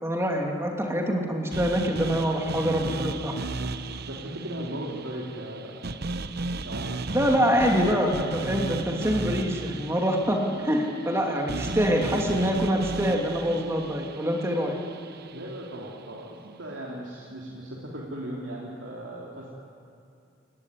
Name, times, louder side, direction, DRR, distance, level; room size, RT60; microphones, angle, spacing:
voice 1, 0.0-3.3 7.1-14.8, equal, 15° right, 1 dB, 2.6 m, -25 dB
sound 1, 1.5-15.7, right 3 dB, 55° right, 0.9 m, -35 dB
voice 2, 4.0-5.8 6.6-7.3 7.7-8.6 15.3-19.5, right 1 dB, 70° right, -4 dB, 3.3 m, -38 dB
27.5 x 15.0 x 9.8 m, 2.5 s
head